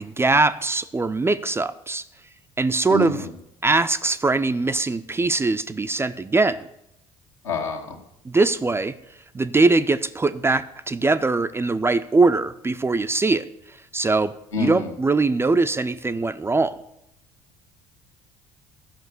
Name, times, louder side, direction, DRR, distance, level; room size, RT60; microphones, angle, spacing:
voice 1, 0.0-2.0 2.6-3.3 3.6-6.6 8.2-8.9 9.3-13.5 13.9-16.7, right 3 dB, 15° right, 11 dB, 0.5 m, -21 dB
voice 2, 2.9-3.3 7.4-8.0 14.5-14.9, left 4 dB, 75° left, 0 dB, 1.6 m, -27 dB
13.0 x 5.9 x 6.8 m, 0.80 s
figure-of-eight pair, 55°, 16 cm